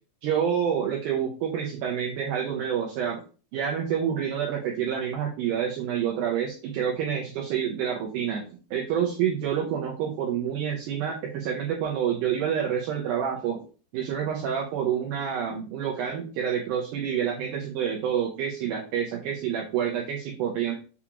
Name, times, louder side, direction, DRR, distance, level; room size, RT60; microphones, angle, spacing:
voice 1, 0.2-3.2 3.5-13.6 13.9-20.7, right 8 dB, 80° right, -1 dB, 1.9 m, -28 dB
6.9 x 2.4 x 2.9 m, 0.36 s
omnidirectional pair, 4.3 m